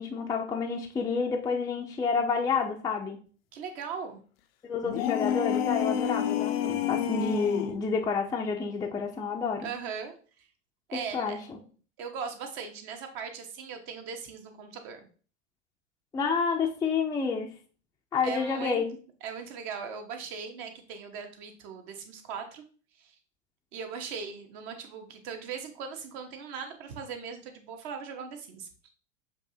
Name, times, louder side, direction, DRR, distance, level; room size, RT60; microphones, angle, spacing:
voice 1, 0.0-3.2 4.6-9.7 10.9-11.6 16.1-17.5 18.1-19.0, left 5 dB, 10° left, 1 dB, 0.5 m, -29 dB
voice 2, 3.5-4.2 9.6-10.5 10.9-11.4 12.0-15.0 18.2-18.9 19.2-22.6 23.0-23.2 23.7-28.7, right 6 dB, 50° right, 5 dB, 1.1 m, -39 dB
sound 1, 4.8-7.8, left 10 dB, 55° left, 0.6 m, -29 dB
6.9 x 2.7 x 2.8 m, 0.40 s
hypercardioid pair, 95°, 35 cm